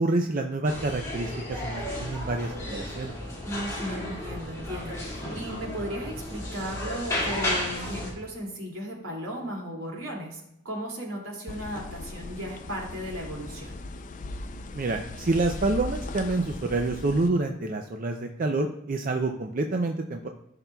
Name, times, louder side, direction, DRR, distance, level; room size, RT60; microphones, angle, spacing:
voice 1, 0.0-3.1 14.7-20.3, right 2 dB, 40° right, 4 dB, 0.4 m, -27 dB
sound 1, 0.7-8.1, left 1 dB, 15° left, 2.1 m, -33 dB
voice 2, 3.4-13.7, equal, 75° right, -1 dB, 2.4 m, -36 dB
sound 2, 11.5-17.3, left 2 dB, 35° left, 0.4 m, -38 dB
14.5 x 5.9 x 2.3 m, 0.79 s
head